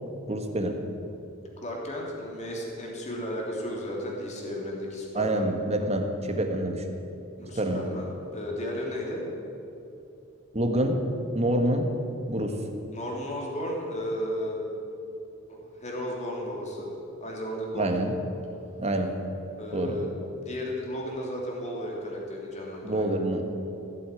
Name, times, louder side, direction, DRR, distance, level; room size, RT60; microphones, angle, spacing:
voice 1, 0.3-0.8 5.1-6.8 7.5-7.8 10.5-11.0 11.3-11.9 12.3-12.6 17.7-18.1 18.8-19.1 19.7-20.0 22.8-23.4, right 1 dB, 30° right, 4 dB, 1.6 m, -26 dB
voice 2, 1.6-5.5 7.4-9.2 12.9-14.6 15.5-16.9 17.2-18.0 19.6-20.1 20.4-23.1, equal, 35° left, -2 dB, 3.2 m, -34 dB
16.0 x 8.4 x 9.2 m, 2.8 s
head